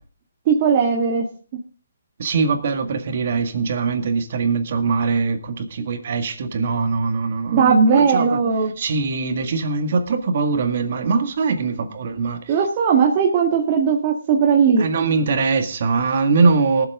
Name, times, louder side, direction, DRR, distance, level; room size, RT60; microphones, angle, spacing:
voice 1, 0.5-1.3 7.5-8.7 12.5-14.8, right 6 dB, 35° right, 1.7 m, -17 dB
voice 2, 2.2-8.4 8.8-12.6 14.8-16.9, right 4 dB, 50° right, 2.0 m, -22 dB
19.0 x 7.8 x 3.7 m
hypercardioid pair, 155°, 0 cm